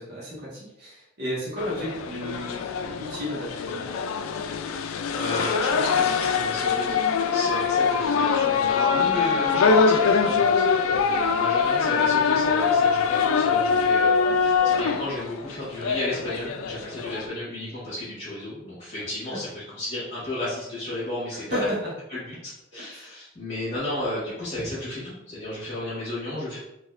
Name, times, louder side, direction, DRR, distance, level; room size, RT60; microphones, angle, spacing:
voice 1, 0.0-3.9 19.3-19.4 21.3-21.9 22.7-23.1, equal, 55° right, -7 dB, 1.3 m, -33 dB
sound 1, 1.6-17.2, left 5 dB, 90° left, 0.3 m, -23 dB
voice 2, 5.1-7.0 7.3-10.6 11.0-21.4 22.3-26.6, left 1 dB, 35° left, -10 dB, 1.4 m, -33 dB
3.9 x 2.9 x 2.5 m, 0.88 s
head